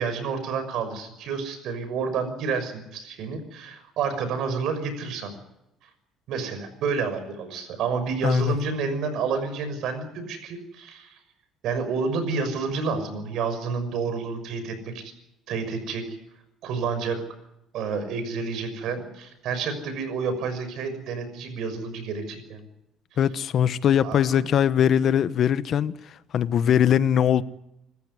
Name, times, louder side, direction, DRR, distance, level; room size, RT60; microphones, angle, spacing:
voice 1, 0.0-5.4 6.3-11.2 11.6-15.1 15.5-16.0 16.6-17.2 17.7-22.6 24.0-24.3, right 5 dB, 70° right, 6.2 m, -29 dB
voice 2, 8.2-8.6 23.2-27.4, left 9 dB, 55° left, 1.1 m, -21 dB
26.5 x 14.5 x 9.7 m
cardioid pair, 100°, 0 cm